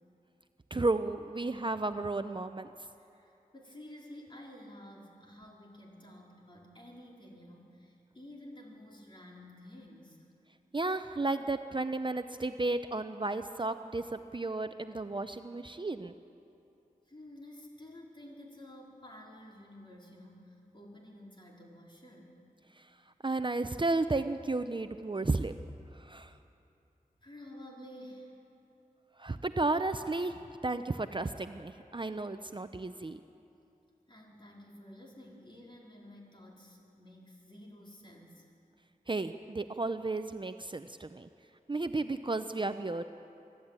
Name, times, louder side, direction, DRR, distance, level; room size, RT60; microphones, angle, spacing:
voice 1, 0.7-2.7 10.7-16.1 22.8-22.9 23.2-25.5 25.9-26.3 29.2-33.2 39.1-41.3 41.7-43.0, right 2 dB, 30° right, 9 dB, 0.6 m, -33 dB
voice 2, 3.0-10.3 17.0-22.4 27.2-28.4 34.1-38.5, left 1 dB, 30° left, -2 dB, 4.4 m, -51 dB
24.0 x 12.5 x 9.0 m, 2.8 s
wide cardioid pair, 60°, 15 cm